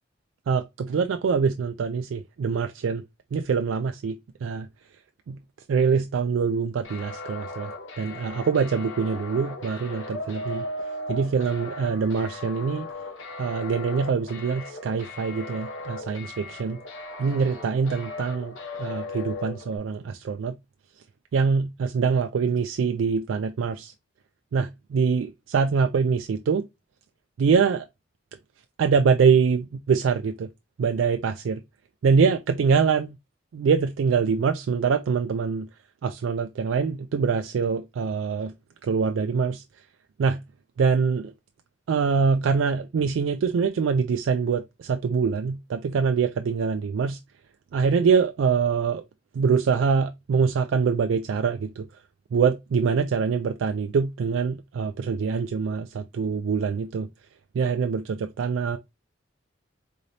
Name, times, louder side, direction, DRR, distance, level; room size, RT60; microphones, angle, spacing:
voice 1, 0.5-3.0 3.3-4.7 5.3-5.4 5.7-7.7 8.0-10.7 11.1-12.9 13.4-16.8 17.2-20.6 21.3-23.9 24.5-26.6 27.4-27.9 28.8-30.5 30.8-31.6 32.0-33.2 33.5-35.7 36.0-38.5 38.8-39.6 40.2-40.4 40.8-41.3 41.9-47.2 47.7-49.0 49.3-51.9 52.3-57.1 57.5-58.8, right 5 dB, 85° right, 0.3 m, -24 dB
sound 1, 6.8-19.8, left 2 dB, 80° left, 0.9 m, -37 dB
3.8 x 3.2 x 2.6 m
head